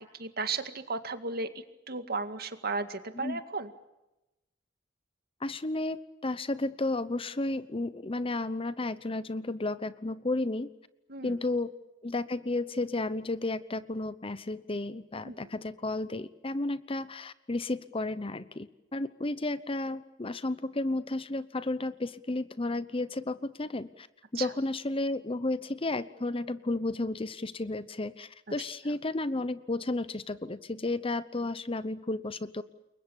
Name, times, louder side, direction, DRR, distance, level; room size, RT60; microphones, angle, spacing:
voice 1, 0.0-1.5 1.9-3.7 11.1-11.4 15.2-15.5 24.4-24.5, right 4 dB, 55° right, 9 dB, 2.0 m, -35 dB
voice 2, 5.4-10.7 11.2-11.7 12.0-24.1 24.3-32.6, left 2 dB, 30° left, 15 dB, 0.9 m, -33 dB
29.0 x 23.0 x 7.2 m, 0.96 s
head